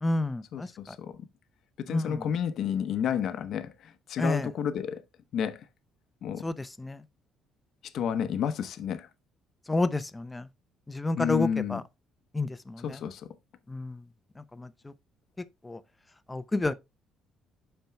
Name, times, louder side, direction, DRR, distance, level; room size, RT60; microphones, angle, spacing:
voice 1, 0.0-0.7 1.9-2.3 4.2-4.5 6.4-7.0 9.7-10.4 10.9-11.8 12.3-13.0 13.7-14.0 14.6-14.7 15.6-15.8 16.3-16.7, left 2 dB, 15° left, 0.6 m, -29 dB
voice 2, 0.5-1.1 1.8-3.7 4.1-5.0 5.3-5.6 6.2-6.4 7.9-9.1 11.1-11.8 12.8-13.2, left 8 dB, 65° left, 0.8 m, -30 dB
12.5 x 4.4 x 2.2 m
cardioid pair, 90°, 0 cm